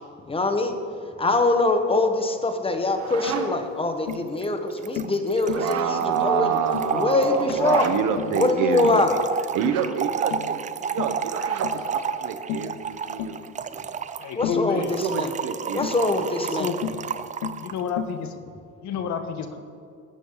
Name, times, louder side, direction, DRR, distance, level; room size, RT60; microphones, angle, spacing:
voice 1, 0.3-0.7 1.2-6.5 6.9-7.9 8.3-9.1 14.3-15.3 15.7-16.7, left 2 dB, 15° left, 6 dB, 1.6 m, -23 dB
sound 1, 2.7-3.8 5.4-6.0 7.5-8.0 9.5-9.9 11.2-11.8, right 6 dB, 45° right, 1.6 m, -34 dB
Tap, 3.3-3.5 4.1-4.3 5.0-5.2 5.5-5.7 6.2-6.4 6.7-7.0 7.5-7.7 8.2-8.4 8.8-9.1 9.6-9.9 10.3-10.6 11.0-11.2 11.6-11.8 12.5-12.7 13.2-13.4 14.4-14.7 15.8-16.0 16.8-17.1 17.4-17.7 18.0-18.2, left 10 dB, 75° left, 1.0 m, -33 dB
Trickle dribble / Fill (with liquid), 4.1-4.2 4.4-4.5 4.7-17.8, right 7 dB, 20° right, 0.5 m, -31 dB
voice 2, 5.4-9.2 9.5-13.9 14.5-16.2, right 8 dB, 60° right, 8 dB, 1.4 m, -28 dB
voice 3, 14.2-15.0 15.7-15.9 16.4-16.8 17.6-18.3 18.8-19.6, left 6 dB, 55° left, 7 dB, 1.5 m, -30 dB
20.5 x 9.2 x 4.1 m, 2.4 s
supercardioid pair, 105°, 35 cm